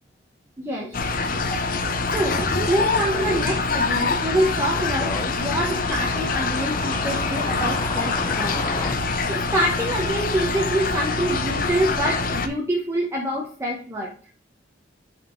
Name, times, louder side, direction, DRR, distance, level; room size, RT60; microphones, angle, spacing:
voice 1, 0.6-1.4 2.0-8.6 9.2-14.1, right 1 dB, 15° right, -3 dB, 1.1 m, -26 dB
sound 1, 0.9-12.5, left 3 dB, 50° left, 0.8 m, -25 dB
sound 2, 2.1-8.9, left 3 dB, 25° left, 0.4 m, -35 dB
7.2 x 4.3 x 3.2 m, 0.41 s
head